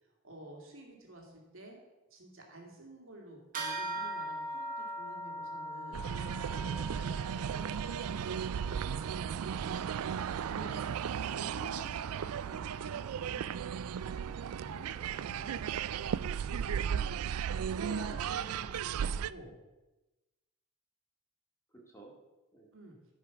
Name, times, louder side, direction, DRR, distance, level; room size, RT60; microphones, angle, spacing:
voice 1, 0.0-1.8 2.1-6.0 6.5-6.6 6.9-9.8 10.2-15.7 17.7-19.5 22.7-23.0, right 1 dB, 60° right, 0 dB, 2.4 m, -51 dB
sound 1, 3.5-13.3, right 1 dB, 35° right, 1.9 m, -43 dB
sound 2, 5.9-19.3, right 8 dB, 80° right, 0.3 m, -35 dB
voice 2, 6.6-7.0 10.5-10.9 16.8-17.6 21.9-22.1 22.5-22.7, right 3 dB, 15° left, -1 dB, 2.0 m, -53 dB
14.0 x 5.2 x 6.0 m, 1.1 s
head